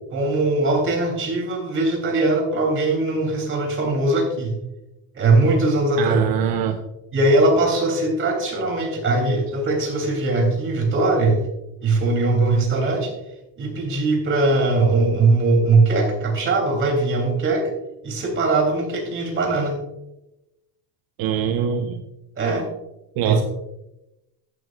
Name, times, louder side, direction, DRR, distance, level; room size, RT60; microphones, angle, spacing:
voice 1, 0.1-4.6 5.1-6.2 7.1-11.4 11.8-13.1 13.6-17.7 18.0-19.8 22.4-22.7 23.2-23.3, right 2 dB, 35° right, 2 dB, 3.3 m, -20 dB
voice 2, 6.0-6.8 21.2-22.0 23.2-23.4, right 8 dB, 65° right, 6 dB, 0.9 m, -23 dB
14.0 x 9.7 x 2.5 m, 0.94 s
cardioid pair, 135°, 37 cm